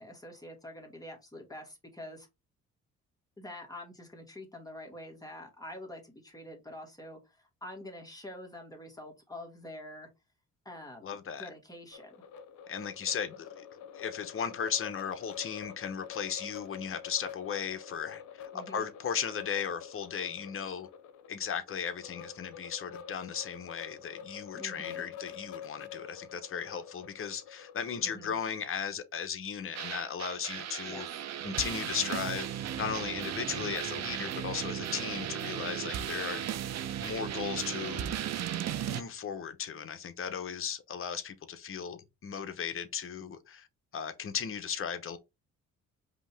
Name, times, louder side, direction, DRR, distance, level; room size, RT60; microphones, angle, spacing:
voice 1, 0.0-2.3 3.4-10.1 10.7-12.3 18.5-18.9 24.6-25.0 28.0-28.4 30.9-31.3 34.0-34.5, left 1 dB, 10° left, 1.9 m, -46 dB
voice 2, 11.0-11.5 12.7-13.7 13.9-20.9 21.3-31.1 31.4-32.5 32.7-36.4 37.0-38.2 38.9-43.7 43.9-45.2, left 7 dB, 45° left, 0.9 m, -36 dB
sound 1, 11.9-28.6, left 8 dB, 75° left, 0.8 m, -47 dB
sound 2, 29.7-39.0, right 10 dB, 60° right, 0.7 m, -36 dB
5.2 x 2.8 x 3.4 m
cardioid pair, 90°, 30 cm